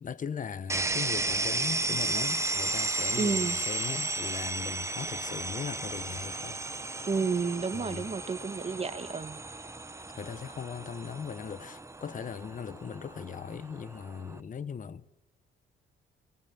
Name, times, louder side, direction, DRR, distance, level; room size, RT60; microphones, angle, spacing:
voice 1, 0.0-6.6 7.7-8.1 10.2-15.2, left 7 dB, 40° left, 1.1 m, -39 dB
sound 1, 0.7-14.4, right 2 dB, 15° right, 1.3 m, -34 dB
voice 2, 3.2-3.6 7.1-9.4, right 4 dB, 30° right, 1.6 m, -31 dB
23.5 x 22.0 x 8.8 m
cardioid pair, 90°, 20 cm